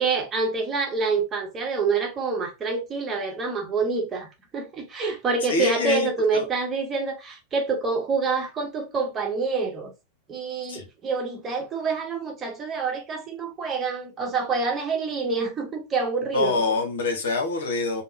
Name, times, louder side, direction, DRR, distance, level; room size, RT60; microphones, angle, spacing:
voice 1, 0.0-4.3 4.5-9.9 10.3-16.6, right 4 dB, 25° right, 0.9 m, -27 dB
voice 2, 5.5-6.4 10.7-10.8 16.3-18.0, left 3 dB, 60° left, 0.8 m, -25 dB
3.5 x 2.1 x 2.5 m
figure-of-eight pair, 90°, 0 cm